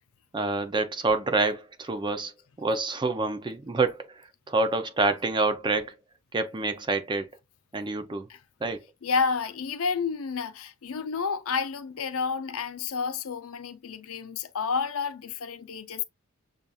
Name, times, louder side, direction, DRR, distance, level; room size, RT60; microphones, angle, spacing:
voice 1, 0.3-2.3 2.6-4.2 4.5-5.9 6.3-7.3 7.7-8.3 8.6-8.8, right 3 dB, 20° right, 0.5 m, -27 dB
voice 2, 9.0-16.0, left 5 dB, 70° left, 0.5 m, -30 dB
6.8 x 2.5 x 2.3 m
head